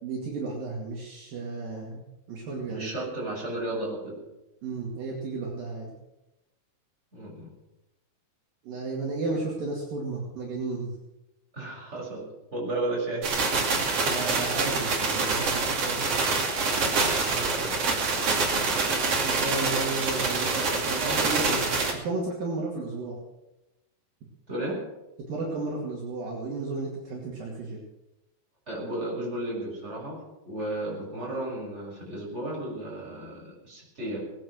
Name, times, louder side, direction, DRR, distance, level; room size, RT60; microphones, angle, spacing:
voice 1, 0.0-2.9 4.6-5.9 8.6-10.9 14.1-16.2 19.2-21.7 21.9-23.2 25.3-27.8, right 3 dB, 60° right, -3 dB, 3.8 m, -33 dB
voice 2, 2.7-4.2 7.1-7.5 11.5-12.2 12.5-13.9 17.3-17.7 24.5-24.8 28.7-34.2, right 1 dB, 15° right, -4 dB, 6.7 m, -34 dB
sound 1, 13.2-21.9, right 4 dB, 40° right, 3.0 m, -26 dB
19.5 x 10.5 x 6.3 m, 0.95 s
omnidirectional pair, 4.6 m